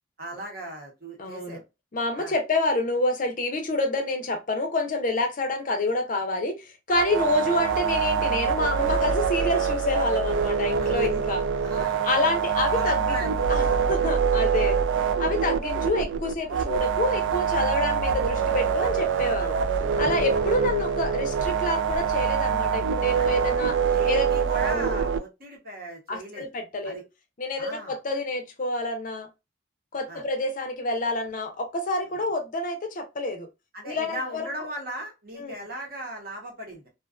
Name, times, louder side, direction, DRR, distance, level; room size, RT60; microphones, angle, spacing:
voice 1, 0.2-1.6 2.2-2.3 7.2-7.4 10.8-11.2 11.6-12.1 12.7-14.2 14.6-14.8 19.4-19.6 23.2-23.4 23.9-26.5 26.8-27.0 27.6-27.9 30.1-30.2 33.7-36.9, right 1 dB, 50° right, 0.9 m, -37 dB
voice 2, 1.2-1.6 1.9-11.4 12.0-13.2 13.5-14.8 15.2-19.6 20.0-23.8 24.1-24.3 24.7-25.0 26.1-27.0 27.4-29.3 29.9-33.5 33.8-34.7 35.4-35.5, left 2 dB, 45° left, 0.5 m, -28 dB
sound 1, 6.9-25.2, right 6 dB, 75° right, 0.3 m, -25 dB
sound 2, 19.6-21.5 21.9-24.2, equal, 25° right, 0.9 m, -42 dB
2.4 x 2.3 x 2.3 m
head